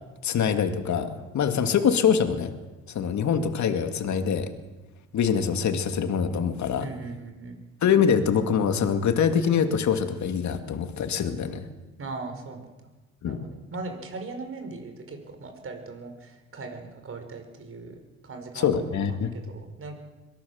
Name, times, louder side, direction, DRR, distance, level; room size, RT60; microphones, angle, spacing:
voice 1, 0.2-2.5 2.9-4.5 5.1-6.9 7.8-11.6 13.2-13.4 18.6-19.3, left 7 dB, 70° left, 7 dB, 2.4 m, -24 dB
voice 2, 6.8-7.6 12.0-12.7 13.2-19.9, right 3 dB, 45° right, 5 dB, 5.3 m, -39 dB
23.0 x 18.0 x 7.2 m, 1.1 s
cardioid pair, 90°, 30 cm